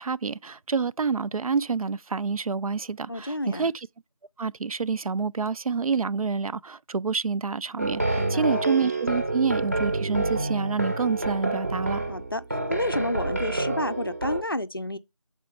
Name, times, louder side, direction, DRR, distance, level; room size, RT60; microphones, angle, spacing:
voice 1, 0.0-3.7 4.4-12.0, right 5 dB, 90° right, 0.4 m, -28 dB
voice 2, 3.1-3.7 8.2-8.6 12.1-15.0, left 1 dB, 40° left, 0.4 m, -30 dB
sound 1, 7.8-14.4, right 2 dB, 25° right, 0.7 m, -28 dB
6.8 x 4.3 x 4.5 m
figure-of-eight pair, 170°, 18 cm